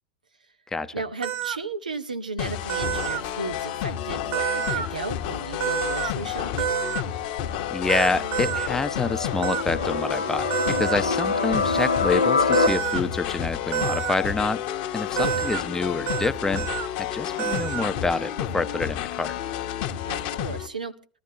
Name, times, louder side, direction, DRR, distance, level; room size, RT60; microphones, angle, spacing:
voice 1, 0.9-6.8 15.2-15.5 20.1-20.9, right 3 dB, 85° right, 10 dB, 0.9 m, -34 dB
sound 1, 1.2-1.6 2.7-3.2 4.3-4.9 5.6-6.1 6.6-7.0 7.9-8.7 9.4-9.6 10.5-11.0 12.5-13.0 13.7-14.2 15.2-15.6 16.1-16.3 16.5-16.9 17.4-17.9, right 11 dB, 45° right, 0.8 m, -28 dB
sound 2, 2.4-20.7, left 10 dB, 50° left, 1.1 m, -31 dB
sound 3, 7.1-12.7, left 4 dB, 85° left, 0.8 m, -26 dB
voice 2, 7.7-14.6 14.9-16.7 17.0-19.3, left 3 dB, 10° left, 12 dB, 0.8 m, -27 dB
19.5 x 13.0 x 2.8 m, 0.39 s
figure-of-eight pair, 85°, 4 cm